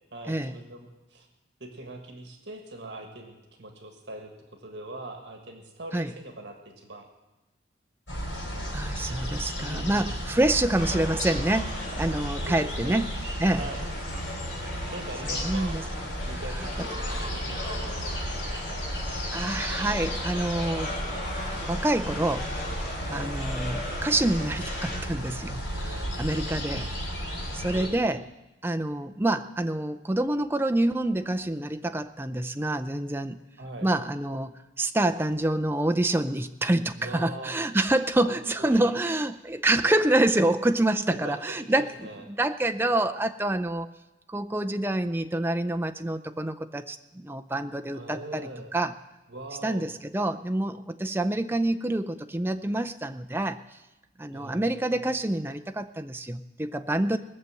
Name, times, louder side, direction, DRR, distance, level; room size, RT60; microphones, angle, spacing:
voice 1, 0.1-1.3 1.6-7.0 9.6-10.5 12.4-13.0 13.6-13.9 14.9-15.8 16.2-18.6 23.1-23.3 25.7-26.8 27.7-28.0 33.6-33.9 37.0-37.5 38.2-39.0 41.1-42.2 47.9-48.7 49.3-49.9 54.3-55.1, right 1 dB, 65° right, 3 dB, 1.7 m, -42 dB
sound 1, 8.1-27.9, equal, 80° left, 4.0 m, -33 dB
voice 2, 8.7-13.1 13.4-13.7 15.4-15.8 16.6-16.7 17.2-17.3 19.3-21.0 21.7-22.5 23.1-26.9 27.5-28.2 28.6-33.4 33.8-41.9 42.3-43.9 44.3-48.9 49.6-53.6 54.2-57.2, right 1 dB, 10° right, 9 dB, 0.5 m, -27 dB
sound 2, 10.8-25.0, left 1 dB, 40° left, 2.7 m, -39 dB
19.5 x 6.8 x 7.7 m, 1.1 s
head